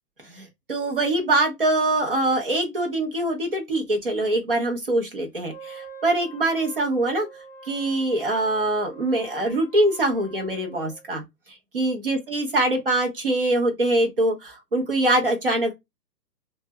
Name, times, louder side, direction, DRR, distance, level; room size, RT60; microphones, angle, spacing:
voice 1, 0.3-7.3 7.6-11.2 11.7-15.7, right 1 dB, 35° right, 0.6 m, -23 dB
Wind instrument woodwind instrument, 5.5-11.1, right 2 dB, 35° left, 0.5 m, -45 dB
2.1 x 2.0 x 3.3 m
hypercardioid pair, 165°, 50 cm